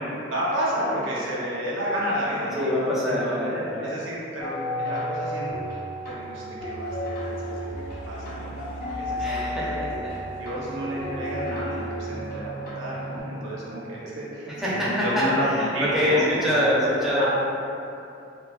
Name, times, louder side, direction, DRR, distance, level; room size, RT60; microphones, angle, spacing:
voice 1, 0.0-2.7 3.1-5.6 6.0-8.5 8.9-9.9 10.4-16.6 17.2-17.3, equal, 80° right, -6 dB, 0.7 m, -31 dB
voice 2, 2.5-4.0 9.2-10.2 14.5-17.2, equal, ahead, -9 dB, 0.5 m, -25 dB
sound 1, 4.4-13.2, equal, 50° left, 0.7 m, -32 dB
Laughter / Crowd, 6.6-12.4, left 1 dB, 80° left, 0.4 m, -46 dB
3.2 x 2.3 x 2.2 m, 2.7 s
head